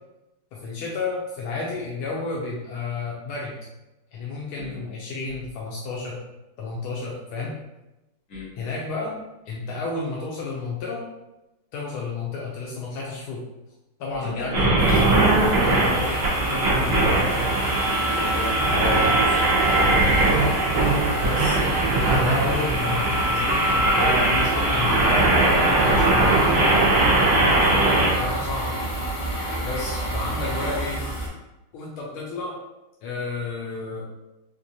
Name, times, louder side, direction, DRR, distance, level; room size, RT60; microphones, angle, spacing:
voice 1, 0.5-3.6 4.1-6.2 6.6-7.5 8.6-9.1 9.5-11.0 11.7-13.4 14.0-15.3 15.6-17.3 21.2-21.6 22.0-27.2 27.7-28.8 29.6-31.0 31.7-32.5 33.0-34.0, left 4 dB, 80° left, -4 dB, 1.4 m, -31 dB
voice 2, 14.2-14.6 18.1-20.0, left 1 dB, 40° left, -8 dB, 1.5 m, -32 dB
sound 1, 14.5-28.1, right 2 dB, 65° right, 0.8 m, -20 dB
sound 2, 14.8-31.3, right 1 dB, 60° left, 1.6 m, -29 dB
4.4 x 2.4 x 2.6 m, 0.99 s
omnidirectional pair, 2.4 m